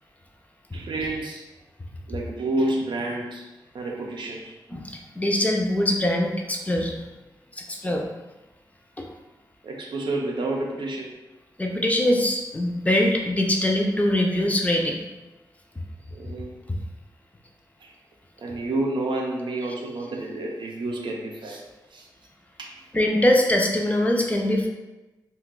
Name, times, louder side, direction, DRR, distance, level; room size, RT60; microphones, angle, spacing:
voice 1, 0.7-1.4 2.1-3.5 3.7-4.6 9.6-11.1 16.1-16.5 17.8-17.9 18.4-21.6 21.9-22.1 22.6-22.8, right 2 dB, 80° right, 0 dB, 0.5 m, -29 dB
voice 2, 4.7-6.9 7.6-8.1 9.0-9.1 11.6-15.0 22.9-24.7, left 1 dB, 20° left, 0 dB, 0.4 m, -23 dB
2.7 x 2.2 x 3.8 m, 1.1 s
wide cardioid pair, 125°, 8 cm